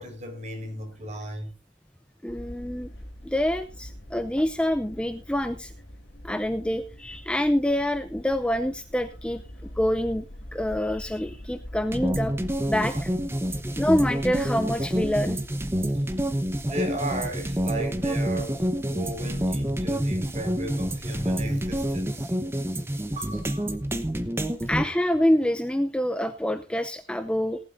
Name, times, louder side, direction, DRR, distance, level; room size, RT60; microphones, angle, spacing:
voice 1, 0.0-1.5 12.9-13.0 15.9-16.0 16.6-22.3 23.2-23.8, right 1 dB, 40° right, 4.7 m, -35 dB
voice 2, 2.2-2.9 3.2-5.7 6.2-9.4 9.8-10.3 10.5-12.3 12.7-13.1 13.8-15.4 24.7-27.6, left 1 dB, 5° left, 0.5 m, -26 dB
sound 1, 2.3-22.0, equal, 75° left, 3.1 m, -44 dB
sound 2, 11.9-24.8, equal, 15° right, 1.0 m, -28 dB
18.5 x 12.0 x 2.6 m
head